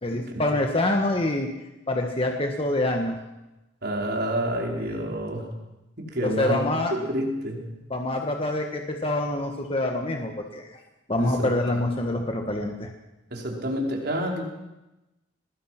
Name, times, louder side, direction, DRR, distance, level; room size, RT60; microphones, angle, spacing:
voice 1, 0.0-1.5 1.9-3.2 4.8-5.0 6.2-6.9 7.9-10.7 11.1-12.9, left 1 dB, 30° left, 3 dB, 1.6 m, -26 dB
voice 2, 3.8-5.5 6.0-7.6 11.2-11.8 13.3-14.4, equal, 55° right, 0 dB, 4.9 m, -29 dB
23.5 x 20.0 x 6.0 m, 1.0 s
head